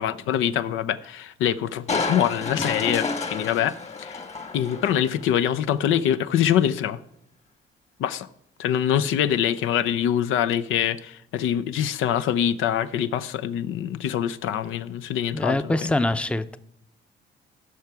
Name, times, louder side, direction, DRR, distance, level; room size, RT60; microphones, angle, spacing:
voice 1, 0.0-4.2 4.5-7.0 8.0-8.3 8.6-15.7, left 10 dB, 90° left, 0.6 m, -24 dB
Crushing, 1.9-5.3 5.7-5.8, left 4 dB, 35° left, 1.4 m, -30 dB
voice 2, 15.3-16.6, left 2 dB, 5° left, 0.6 m, -24 dB
15.5 x 5.8 x 4.6 m
cardioid pair, 90°, 20 cm